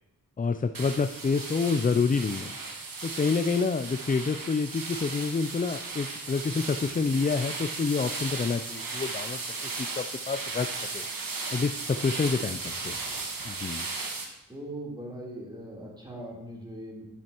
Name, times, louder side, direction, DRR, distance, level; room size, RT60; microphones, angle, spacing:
voice 1, 0.4-2.5 3.0-11.1 11.5-13.0 13.4-13.9, left 4 dB, 25° left, 9 dB, 0.4 m, -28 dB
sound 1, 0.7-14.2, right 3 dB, 80° right, 1.4 m, -36 dB
voice 2, 14.5-17.1, right 1 dB, 15° right, -4 dB, 3.4 m, -40 dB
11.5 x 7.7 x 3.0 m, 0.93 s
cardioid pair, 50°, 34 cm